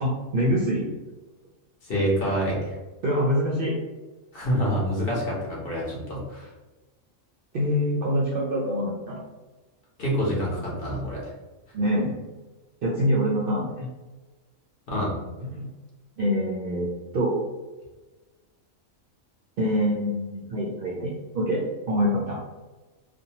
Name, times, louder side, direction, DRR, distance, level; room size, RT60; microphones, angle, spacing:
voice 1, 0.0-0.9 3.0-3.8 7.5-9.2 11.7-12.2 12.8-13.9 15.4-15.7 16.2-16.9 17.1-17.4 19.6-21.6 21.9-22.4, equal, 60° right, -4 dB, 0.6 m, -25 dB
voice 2, 1.8-2.8 4.3-6.5 10.0-11.2 14.9-15.1, equal, 50° left, -4 dB, 0.9 m, -26 dB
2.6 x 2.1 x 2.8 m, 1.2 s
omnidirectional pair, 1.4 m